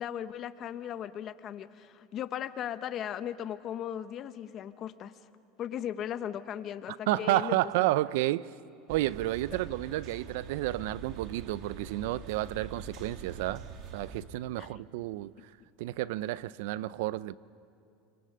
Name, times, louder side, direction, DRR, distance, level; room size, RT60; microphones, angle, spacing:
voice 1, 0.0-5.1 5.6-7.6 9.5-9.6 14.6-14.8, left 10 dB, 40° left, 0.9 m, -37 dB
voice 2, 7.1-8.5 8.9-13.6 13.9-15.3 15.8-17.4, right 16 dB, 75° right, 0.5 m, -31 dB
sound 1, 8.9-14.2, right 5 dB, 50° right, 2.6 m, -45 dB
29.0 x 25.5 x 6.6 m
supercardioid pair, 135°, 0 cm